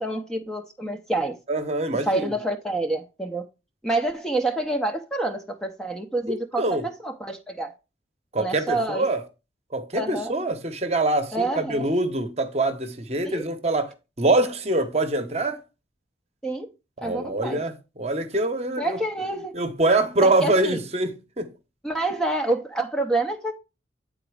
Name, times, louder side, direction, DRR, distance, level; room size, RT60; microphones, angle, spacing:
voice 1, 0.0-1.4 2.0-3.4 3.8-7.7 8.4-9.1 9.9-10.3 11.3-11.9 13.2-13.4 16.4-16.7 17.0-17.6 18.8-19.5 20.2-20.8 21.8-23.5, right 2 dB, 5° left, 0.6 m, -27 dB
voice 2, 1.5-2.3 6.3-6.8 8.3-9.2 9.7-15.6 17.0-19.0 19.5-21.5, right 2 dB, 35° right, 0.9 m, -24 dB
8.8 x 4.0 x 4.8 m
head